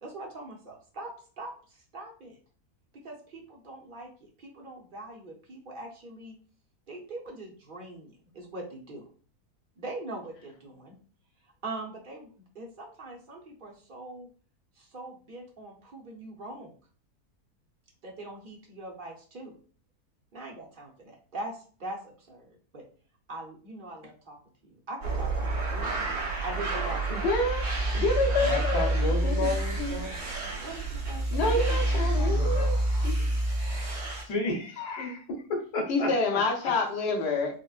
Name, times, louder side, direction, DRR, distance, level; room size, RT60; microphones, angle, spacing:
voice 1, 0.0-2.4 3.0-6.3 6.9-9.1 9.8-10.9 11.6-14.3 14.8-16.7 18.0-19.6 20.3-22.8 23.3-24.4 24.6-27.3 30.6-32.5, right 2 dB, 45° right, -1 dB, 0.7 m, -42 dB
sound 1, 25.0-34.2, right 1 dB, 80° right, 1.7 m, -28 dB
voice 2, 27.1-27.6 27.9-28.9 29.2-29.5 29.8-29.9 31.3-32.7 33.0-33.1 35.0-35.2 35.9-37.6, left 2 dB, 55° left, 2 dB, 0.9 m, -27 dB
voice 3, 28.4-30.6 32.2-32.7 34.3-35.2 35.5-36.1, left 2 dB, 85° left, 0 dB, 1.4 m, -33 dB
4.8 x 2.1 x 2.4 m, 0.41 s
omnidirectional pair, 1.7 m